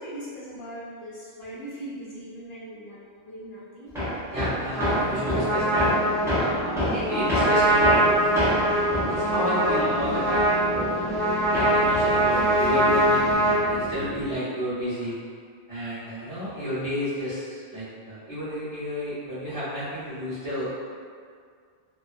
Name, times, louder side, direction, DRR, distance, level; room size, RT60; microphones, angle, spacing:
voice 1, 0.0-3.9, right 1 dB, 70° left, -8 dB, 0.8 m, -40 dB
Hammer, 3.9-11.3 11.5-13.3, equal, 5° right, 0.5 m, -29 dB
voice 2, 4.3-5.9 6.3-15.1 15.7-20.7, equal, 30° right, -14 dB, 1.3 m, -32 dB
sound 1, 4.7-14.3, equal, 15° left, 0.8 m, -36 dB
Trumpet, 4.7-13.6, right 1 dB, 55° right, 1.1 m, -23 dB
2.9 x 2.2 x 2.5 m, 2.1 s
omnidirectional pair, 1.2 m